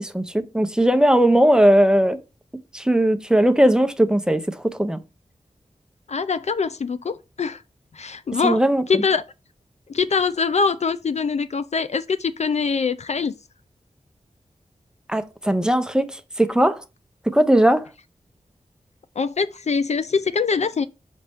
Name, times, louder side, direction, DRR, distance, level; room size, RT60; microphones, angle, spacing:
voice 1, 0.0-2.2 2.7-5.0 8.4-9.0 15.1-16.1 16.4-16.8 17.3-17.9, right 1 dB, 5° right, 0.7 m, -18 dB
voice 2, 6.1-7.6 7.9-8.6 8.9-9.2 9.9-13.3 19.2-20.9, left 5 dB, 55° left, 0.4 m, -23 dB
6.3 x 4.3 x 3.5 m
wide cardioid pair, 70°, 13 cm